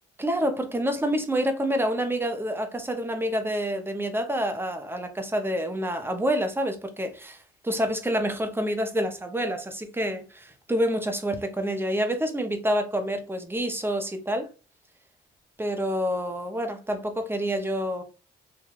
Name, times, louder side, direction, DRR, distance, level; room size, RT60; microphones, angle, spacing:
voice 1, 0.2-7.4 7.6-14.5 15.6-18.0, equal, 10° right, 0.6 m, -27 dB
3.0 x 2.2 x 2.4 m
cardioid pair, 90°, 20 cm